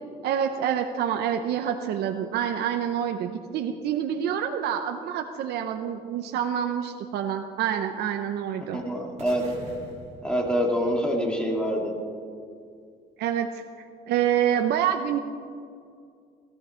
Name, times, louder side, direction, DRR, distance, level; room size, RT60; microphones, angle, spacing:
voice 1, 0.2-8.8 13.2-15.2, right 9 dB, 75° right, 6 dB, 0.8 m, -27 dB
voice 2, 8.7-9.4 10.2-11.9, equal, 5° left, 0 dB, 2.6 m, -25 dB
sound 1, 9.2-11.3, right 2 dB, 40° right, 3.4 m, -45 dB
17.0 x 14.0 x 4.5 m, 2.3 s
cardioid pair, 110°, 17 cm